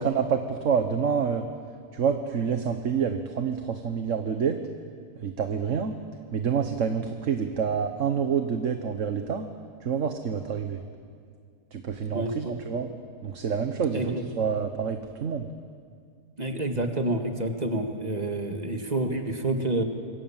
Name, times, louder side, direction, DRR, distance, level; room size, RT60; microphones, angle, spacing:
voice 1, 0.0-1.5 1.9-4.6 5.2-5.9 6.3-9.5 9.8-10.8 11.7-12.9 13.2-15.5, right 6 dB, 50° right, 6 dB, 1.4 m, -27 dB
voice 2, 12.1-12.6 13.9-14.2 16.4-19.8, right 2 dB, 25° right, 4 dB, 1.9 m, -28 dB
26.5 x 25.0 x 7.4 m, 2.2 s
omnidirectional pair, 1.7 m